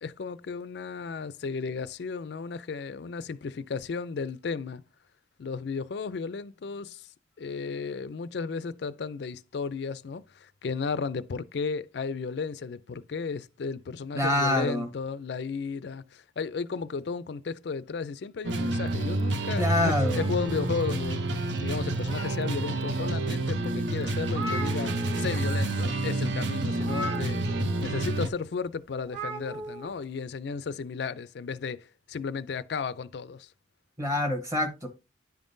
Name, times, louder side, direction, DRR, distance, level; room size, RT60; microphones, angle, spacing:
voice 1, 0.0-4.8 5.4-7.1 7.4-21.2 21.6-27.4 27.8-33.5, left 5 dB, 60° left, 0.4 m, -34 dB
voice 2, 14.1-14.9 19.6-20.3 34.0-34.9, left 1 dB, 15° right, 1.0 m, -26 dB
sound 1, 18.4-28.3, right 2 dB, 70° right, 0.6 m, -29 dB
sound 2, 20.1-21.3 21.8-22.7 23.3-23.4 23.8-23.9 24.0-25.4 25.7-25.9 26.8-27.8 29.0-29.9, right 1 dB, 30° right, 1.7 m, -39 dB
10.5 x 3.6 x 2.6 m
head